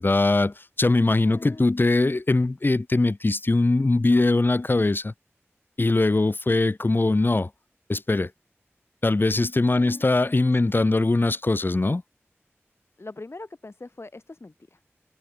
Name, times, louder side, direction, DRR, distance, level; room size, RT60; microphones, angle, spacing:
voice 1, 0.0-5.1 5.8-7.5 7.9-8.3 9.0-12.0, left 2 dB, 45° left, 0.7 m, -21 dB
voice 2, 1.2-1.7 9.6-10.1 10.6-10.9 13.0-14.9, left 2 dB, 60° left, 3.9 m, -43 dB
wide cardioid pair, 50°, 5 cm